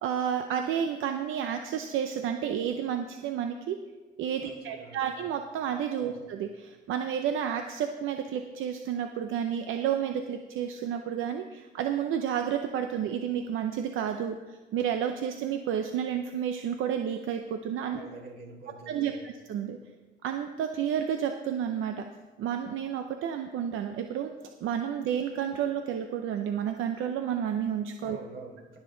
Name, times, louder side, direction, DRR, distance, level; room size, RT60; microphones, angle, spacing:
voice 1, 0.0-3.8 4.2-18.0 18.9-19.8 20.2-22.1 22.4-24.3 24.6-28.2, right 9 dB, 85° right, 6 dB, 0.7 m, -31 dB
voice 2, 4.4-5.2 6.0-6.3 17.9-19.3 28.0-28.8, right 3 dB, 55° right, 0 dB, 3.8 m, -46 dB
19.0 x 7.3 x 3.9 m, 1.2 s
cardioid pair, 90°, 20 cm